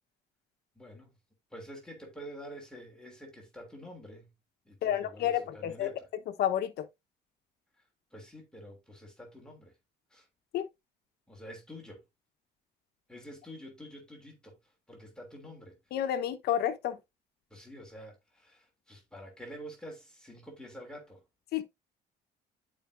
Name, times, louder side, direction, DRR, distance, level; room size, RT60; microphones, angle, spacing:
voice 1, 0.8-1.2 1.5-4.3 4.6-6.1 8.1-9.7 10.1-10.3 11.3-12.0 13.1-15.8 17.5-21.2, equal, 5° left, 2.9 m, -48 dB
voice 2, 4.8-5.9 6.4-6.8 10.5-10.7 15.9-17.0 21.5-21.6, left 10 dB, 70° left, 1.1 m, -30 dB
11.5 x 5.0 x 2.6 m
cardioid pair, 110°, 17 cm